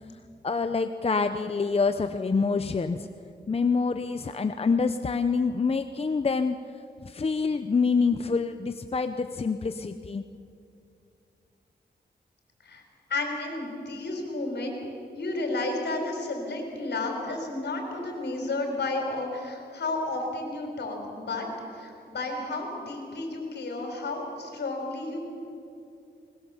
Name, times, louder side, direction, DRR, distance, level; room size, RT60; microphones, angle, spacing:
voice 1, 0.4-3.1 3.5-6.6 7.0-10.2, left 4 dB, 35° left, 9 dB, 0.7 m, -26 dB
voice 2, 13.1-14.8 15.1-21.5 21.7-25.2, left 2 dB, 75° left, 2 dB, 4.7 m, -32 dB
21.0 x 20.0 x 7.2 m, 2.6 s
wide cardioid pair, 85°, 18 cm